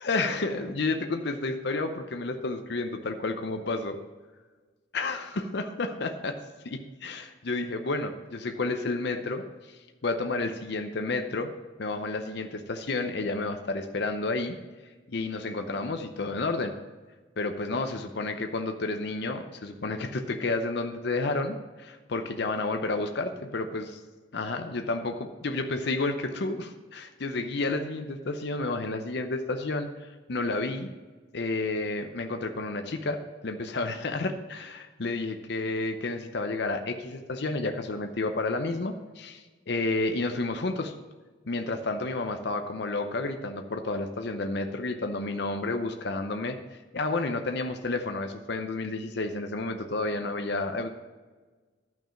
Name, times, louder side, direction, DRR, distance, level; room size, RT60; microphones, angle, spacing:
voice 1, 0.0-4.0 4.9-6.4 6.6-11.5 11.8-14.6 15.1-16.7 17.4-24.0 24.3-30.9 31.3-40.9 41.5-50.9, left 3 dB, 60° left, 6 dB, 0.7 m, -31 dB
11.5 x 6.1 x 5.7 m, 1.4 s
head